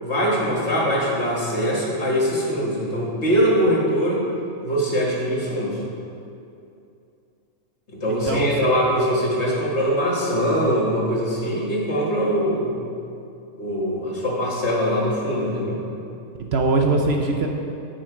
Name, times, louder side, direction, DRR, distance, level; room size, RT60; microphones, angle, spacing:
voice 1, 0.0-4.2 4.6-5.8 7.9-12.7 13.6-15.8, equal, 55° left, -4 dB, 2.3 m, -22 dB
voice 2, 8.1-8.7 16.5-17.5, right 3 dB, 55° right, 2 dB, 1.0 m, -21 dB
13.5 x 6.5 x 5.0 m, 2.6 s
omnidirectional pair, 1.4 m